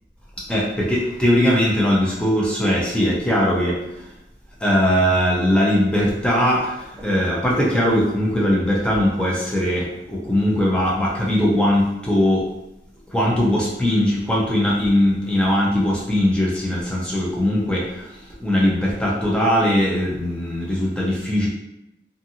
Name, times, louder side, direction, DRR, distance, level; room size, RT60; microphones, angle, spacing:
voice 1, 0.5-4.1 4.6-12.5 13.1-21.5, equal, 5° left, -5 dB, 0.6 m, -20 dB
2.5 x 2.5 x 2.7 m, 0.88 s
head